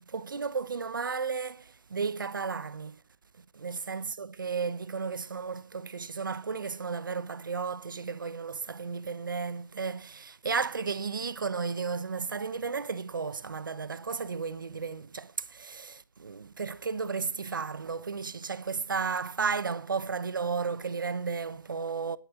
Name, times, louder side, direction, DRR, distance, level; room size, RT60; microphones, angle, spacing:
voice 1, 0.0-3.0 3.5-22.2, right 5 dB, 85° right, 1.1 m, -33 dB
18.5 x 9.9 x 6.9 m
hypercardioid pair, 170°, 11 cm